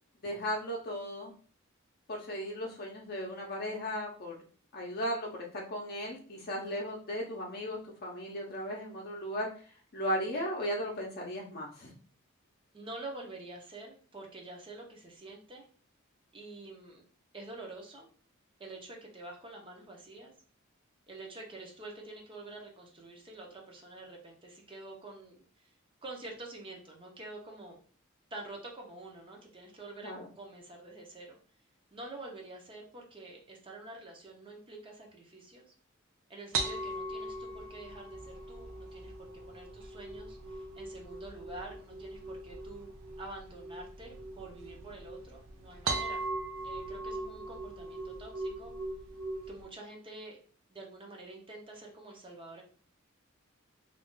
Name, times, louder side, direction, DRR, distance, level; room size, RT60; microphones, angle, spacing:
voice 1, 0.2-1.3 2.1-4.3 4.7-9.5 9.9-11.9 30.0-30.3, equal, 50° left, -2 dB, 0.6 m, -36 dB
voice 2, 12.7-15.7 16.3-17.0 17.3-18.1 18.6-20.3 21.1-25.7 26.0-27.8 28.3-31.4 31.9-35.7 36.3-42.9 43.2-46.2 46.6-48.7 49.5-50.4 50.7-52.6, right 2 dB, 25° right, 0 dB, 0.6 m, -47 dB
sound 1, 36.5-49.6, right 2 dB, 80° right, 0.5 m, -40 dB
2.5 x 2.3 x 3.6 m, 0.42 s
head